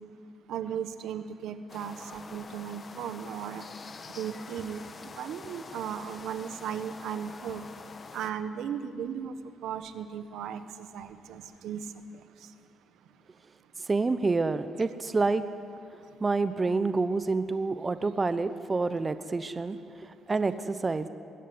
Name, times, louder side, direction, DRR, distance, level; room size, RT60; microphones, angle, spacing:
voice 1, 0.5-3.6 4.2-4.8 5.2-7.7 8.1-9.3 9.6-11.8, right 8 dB, 80° right, 10 dB, 1.3 m, -36 dB
sound 1, 1.7-8.3, left 4 dB, 40° left, 1.4 m, -46 dB
voice 2, 13.9-15.5 16.2-19.8 20.3-21.1, right 3 dB, 25° right, 11 dB, 0.9 m, -27 dB
21.0 x 16.5 x 9.6 m, 2.5 s
cardioid pair, 90°, 0 cm